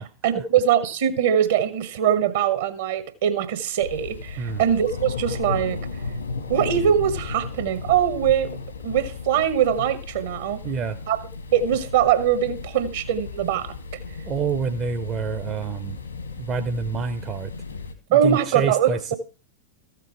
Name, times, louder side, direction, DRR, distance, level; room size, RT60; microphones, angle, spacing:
voice 1, 0.0-5.9 6.5-8.5 8.8-10.6 11.1-11.2 11.5-13.7 18.1-19.2, right 9 dB, 60° right, 1.3 m, -22 dB
sound 1, 3.8-17.9, left 4 dB, 80° left, 1.5 m, -34 dB
voice 2, 10.6-11.0 14.2-16.0 16.4-17.5 18.1-19.1, right 6 dB, 30° right, 0.7 m, -27 dB
14.0 x 6.8 x 4.7 m
figure-of-eight pair, 90°, 0 cm